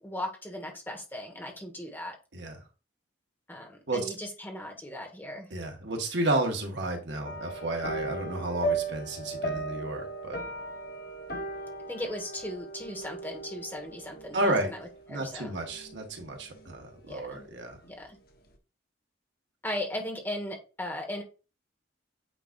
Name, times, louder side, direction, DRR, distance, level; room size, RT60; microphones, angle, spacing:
voice 1, 0.0-2.2 3.5-5.5 11.9-15.6 17.1-17.5 17.9-18.2 19.6-21.2, left 1 dB, 10° left, 1 dB, 1.4 m, -37 dB
voice 2, 5.5-10.4 14.3-14.7 15.1-17.8, right 1 dB, 65° right, 3 dB, 1.4 m, -31 dB
sound 1, 7.2-16.8 17.1-17.5 17.8-17.9, right 2 dB, 50° left, 1.1 m, -37 dB
8.9 x 4.9 x 2.5 m, 0.31 s
head